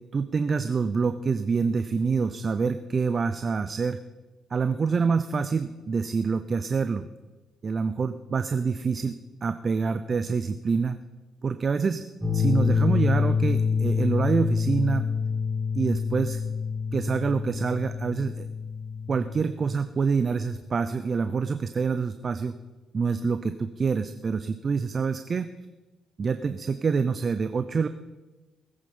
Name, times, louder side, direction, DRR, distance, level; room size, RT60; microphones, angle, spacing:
voice 1, 0.1-4.0 4.5-7.1 7.6-9.1 9.4-11.0 11.4-12.0 12.3-15.1 15.7-16.4 16.9-18.5 19.1-22.6 22.9-25.5 26.2-27.9, right 5 dB, 40° right, 10 dB, 0.6 m, -26 dB
sound 1, 12.2-19.4, left 5 dB, 10° right, 2.8 m, -26 dB
19.5 x 8.8 x 5.5 m, 1.2 s
cardioid pair, 90°, 0 cm